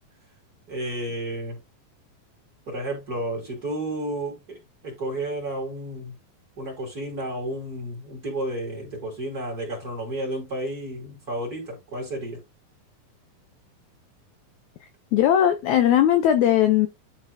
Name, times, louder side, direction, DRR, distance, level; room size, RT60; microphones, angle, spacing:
voice 1, 0.7-1.6 2.7-4.6 4.8-6.1 6.6-12.4, right 1 dB, 25° right, 3.0 m, -31 dB
voice 2, 14.8-16.9, left 11 dB, 85° left, 1.6 m, -19 dB
11.5 x 4.0 x 2.6 m
omnidirectional pair, 4.2 m